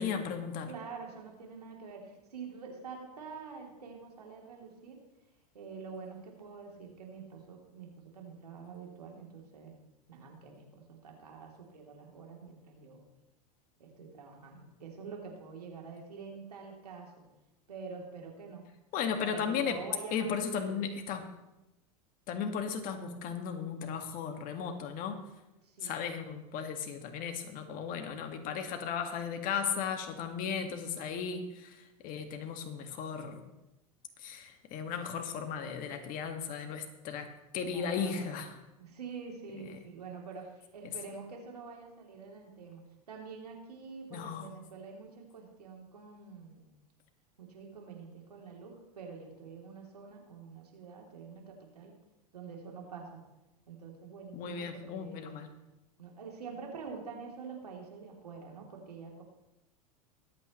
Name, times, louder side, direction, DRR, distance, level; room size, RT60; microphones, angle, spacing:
voice 1, 0.0-0.7 18.9-19.8 20.1-21.2 22.3-25.2 25.8-31.8 32.0-33.4 34.2-37.3 37.5-38.5 44.1-44.5 54.3-55.5, left 6 dB, 45° left, 6 dB, 1.9 m, -35 dB
voice 2, 0.7-5.0 5.5-9.7 10.1-13.0 13.8-17.1 17.7-18.7 19.2-20.8 25.6-26.0 37.6-38.5 38.7-46.6 47.4-51.9 52.3-53.2 53.7-55.4 56.0-59.2, right 5 dB, 90° right, 0 dB, 3.1 m, -46 dB
23.0 x 8.8 x 3.2 m, 0.96 s
hypercardioid pair, 95°, 20 cm